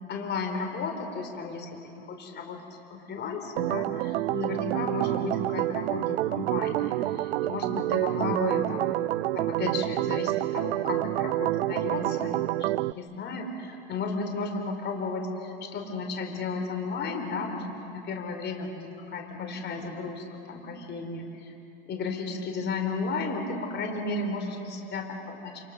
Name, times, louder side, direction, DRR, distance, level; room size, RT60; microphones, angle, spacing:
voice 1, 0.1-2.6 2.9-8.9 9.3-17.6 17.9-21.5 21.9-25.6, left 4 dB, 35° left, 3 dB, 4.5 m, -34 dB
Organ, 3.6-12.9, right 16 dB, 80° right, 0.5 m, -28 dB
28.5 x 28.5 x 6.8 m, 2.8 s
hypercardioid pair, 110°, 31 cm